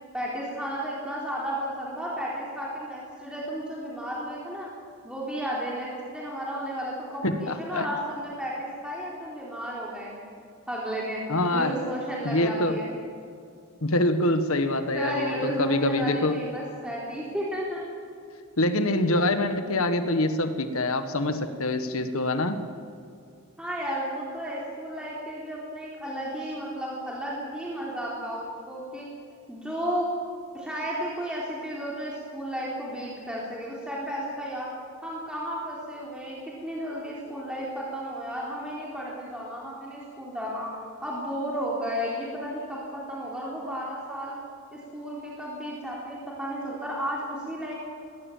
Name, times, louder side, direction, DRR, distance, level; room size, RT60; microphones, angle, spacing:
voice 1, 0.1-4.7 5.0-10.2 10.7-12.9 14.9-17.9 23.6-29.1 29.5-30.1 30.5-34.7 35.0-44.4 44.7-47.7, equal, 5° right, -5 dB, 3.8 m, -33 dB
voice 2, 7.2-7.8 11.3-11.7 12.2-12.7 13.8-16.4 18.6-22.6, left 2 dB, 75° left, 9 dB, 1.5 m, -25 dB
21.0 x 18.0 x 7.4 m, 2.5 s
head